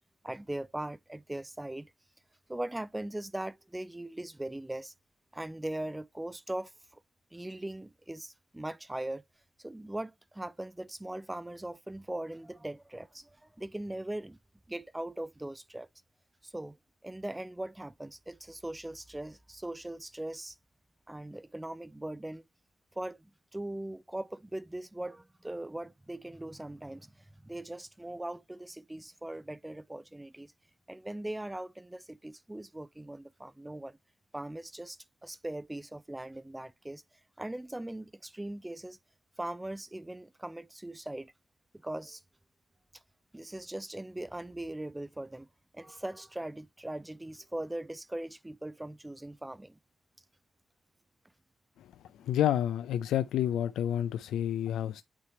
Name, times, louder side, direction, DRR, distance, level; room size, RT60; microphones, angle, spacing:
voice 1, 0.2-1.9 2.5-4.9 5.3-7.0 7.3-9.2 9.6-14.4 14.7-15.9 16.4-16.8 17.0-20.6 21.1-22.4 22.9-30.5 30.9-34.0 34.3-39.0 39.4-41.3 41.8-42.2 42.9-43.0 43.3-45.5 45.7-49.8, right 1 dB, 15° right, 0.4 m, -40 dB
voice 2, 52.2-55.0, left 11 dB, 85° left, 0.3 m, -29 dB
8.5 x 3.1 x 4.3 m
supercardioid pair, 50°, 0 cm